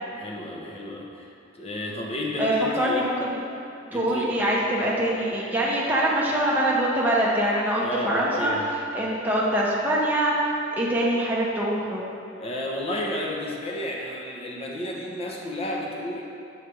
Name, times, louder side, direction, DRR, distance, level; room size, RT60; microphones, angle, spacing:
voice 1, 0.1-3.1 3.9-4.3 7.7-8.7 12.4-16.2, left 1 dB, 30° left, -1 dB, 0.7 m, -32 dB
voice 2, 2.4-3.4 3.9-8.5 8.9-10.3 10.8-12.0, right 1 dB, 10° right, -6 dB, 0.7 m, -24 dB
7.2 x 3.2 x 4.7 m, 2.6 s
head